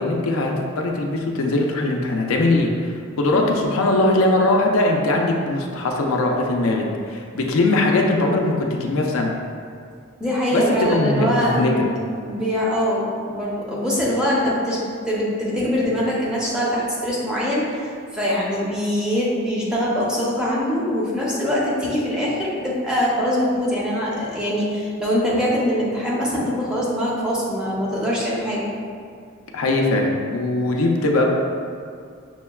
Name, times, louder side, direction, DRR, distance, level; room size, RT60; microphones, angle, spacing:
voice 1, 0.0-2.9 3.2-9.4 10.5-11.9 29.5-31.3, left 2 dB, 70° left, 0 dB, 0.4 m, -20 dB
voice 2, 10.2-11.8 12.2-14.8 15.1-28.7, equal, 5° right, -7 dB, 0.6 m, -23 dB
6.0 x 2.1 x 2.3 m, 2.2 s
head